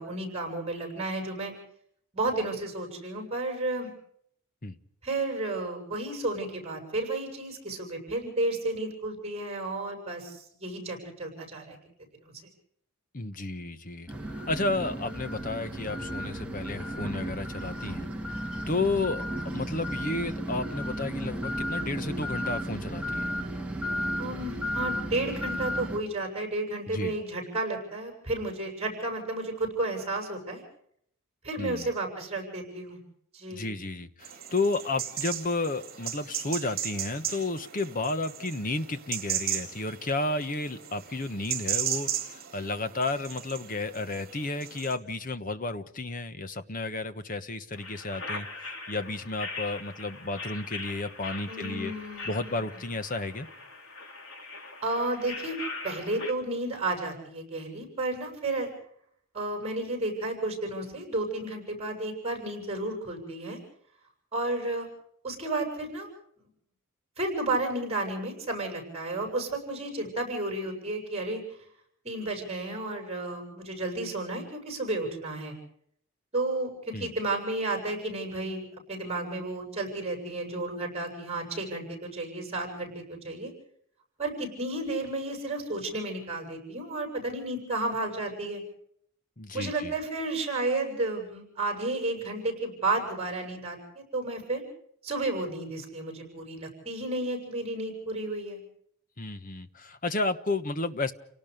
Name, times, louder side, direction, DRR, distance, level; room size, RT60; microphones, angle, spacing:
voice 1, 0.0-1.5 2.1-3.9 5.0-11.8 12.2-12.3 24.2-30.6 31.4-33.0 33.3-33.7 51.5-52.8 54.8-58.7 59.3-63.6 64.3-64.9 65.2-66.1 67.2-71.4 72.0-75.6 76.3-83.5 84.2-88.6 89.5-94.6 95.0-98.6, right 2 dB, 30° right, 3 dB, 7.2 m, -32 dB
voice 2, 13.1-18.1 18.7-23.3 26.9-27.1 31.6-31.9 33.5-48.5 48.9-51.9 52.2-53.5 76.9-77.1 89.4-89.9 99.2-101.1, left 2 dB, 40° left, 11 dB, 1.3 m, -32 dB
sound 1, 14.1-26.0, equal, 5° right, 2.5 m, -34 dB
sound 2, 34.2-44.9, right 10 dB, 45° right, 3.8 m, -36 dB
sound 3, 47.7-56.3, left 3 dB, 65° left, 3.5 m, -41 dB
29.5 x 18.5 x 5.2 m, 0.67 s
head